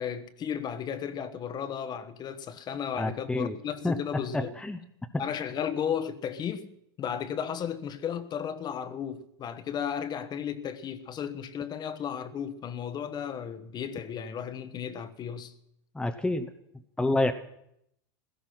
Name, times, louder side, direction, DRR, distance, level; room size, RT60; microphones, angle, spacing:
voice 1, 0.0-4.6 5.2-15.5, left 8 dB, 35° left, 1.2 m, -34 dB
voice 2, 3.0-3.6 3.8-4.0 4.3-4.8 15.9-16.5 17.0-17.3, left 2 dB, 5° left, 0.9 m, -28 dB
17.0 x 13.5 x 5.9 m
hypercardioid pair, 110°, 13 cm